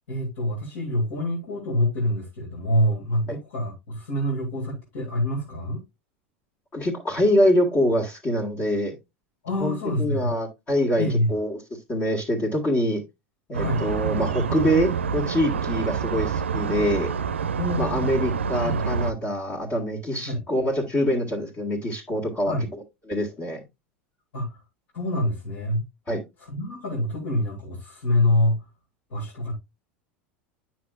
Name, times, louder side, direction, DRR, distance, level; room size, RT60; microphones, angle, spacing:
voice 1, 0.1-5.8 9.4-10.3 11.0-11.3 13.6-13.8 17.6-18.3 18.6-18.8 20.3-20.4 22.5-22.6 24.3-24.6 24.9-25.8 26.4-28.7 29.1-29.6, left 1 dB, 70° left, 2.6 m, -26 dB
voice 2, 6.7-8.9 9.6-11.6 11.9-13.0 13.5-17.1 17.8-22.6 23.1-23.6 26.1-26.2, equal, 30° left, 1.7 m, -24 dB
sound 1, 13.5-19.1, right 6 dB, 85° right, 0.4 m, -27 dB
9.2 x 6.0 x 2.4 m
hypercardioid pair, 85°, 6 cm